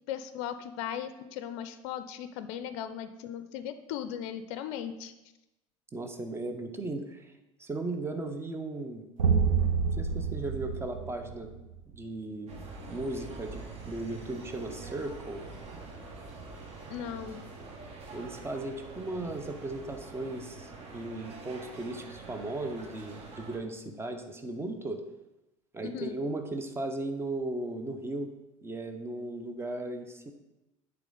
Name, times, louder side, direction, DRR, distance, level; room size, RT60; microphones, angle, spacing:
voice 1, 0.1-5.1 16.9-17.4 25.8-26.1, left 9 dB, 55° left, 11 dB, 0.5 m, -37 dB
voice 2, 5.9-7.3 7.6-9.1 10.0-11.5 11.9-12.5 12.9-15.4 18.1-25.0 25.7-28.3 28.6-30.3, right 2 dB, 15° right, 6 dB, 0.8 m, -36 dB
sound 1, 9.2-11.8, right 6 dB, 75° right, 0.6 m, -27 dB
sound 2, 12.5-23.6, right 3 dB, 40° right, 1.2 m, -45 dB
8.1 x 3.5 x 3.8 m, 0.95 s
figure-of-eight pair, 70°, 17 cm